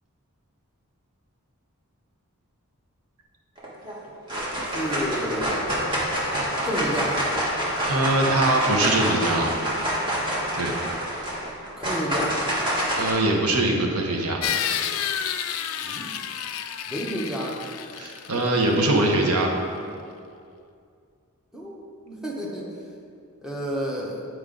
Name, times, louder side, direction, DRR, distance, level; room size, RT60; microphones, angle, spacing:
sound 1, 3.6-4.0 4.3-13.1, equal, 20° right, 1.3 m, -27 dB
voice 1, 4.6-5.7 6.6-7.2 11.8-12.4 15.8-16.1 16.9-17.6 21.5-22.7 23.4-24.2, equal, 5° right, -4 dB, 0.8 m, -30 dB
voice 2, 7.9-9.5 10.6-10.7 13.0-14.4 18.0-19.5, right 2 dB, 85° right, 1 dB, 1.0 m, -22 dB
sound 2, 14.4-19.1, left 9 dB, 65° left, 0.3 m, -30 dB
9.3 x 4.7 x 3.8 m, 2.4 s
head